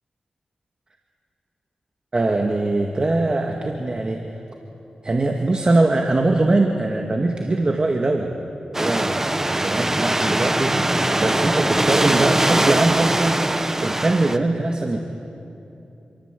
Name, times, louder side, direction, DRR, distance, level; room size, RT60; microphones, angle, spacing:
voice 1, 2.1-4.2 5.0-8.4 8.8-15.0, right 2 dB, 40° right, 2 dB, 1.9 m, -22 dB
sound 1, 8.7-14.4, right 1 dB, 15° right, 1.2 m, -21 dB
28.0 x 24.0 x 8.3 m, 2.9 s
wide cardioid pair, 90°, 2 cm